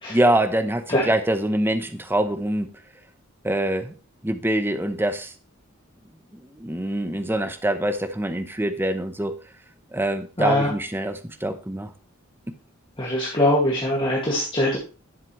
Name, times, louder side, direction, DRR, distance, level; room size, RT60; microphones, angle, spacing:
voice 1, 0.1-2.7 3.4-3.9 4.2-5.3 6.3-9.4 9.9-11.9, right 1 dB, 10° right, 0.8 m, -24 dB
voice 2, 10.4-10.7 13.0-14.8, left 1 dB, 25° left, 2.2 m, -22 dB
11.0 x 7.4 x 3.2 m
head